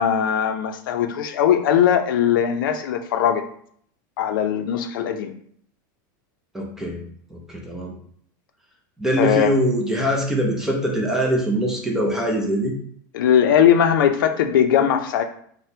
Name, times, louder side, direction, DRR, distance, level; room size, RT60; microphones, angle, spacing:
voice 1, 0.0-3.4 4.2-5.3 9.2-9.5 13.1-15.2, left 9 dB, 85° left, 7 dB, 0.5 m, -19 dB
voice 2, 6.5-7.0 7.3-8.0 9.0-12.7, equal, 5° right, -1 dB, 0.5 m, -23 dB
4.2 x 2.1 x 2.6 m, 0.62 s
supercardioid pair, 165°, 11 cm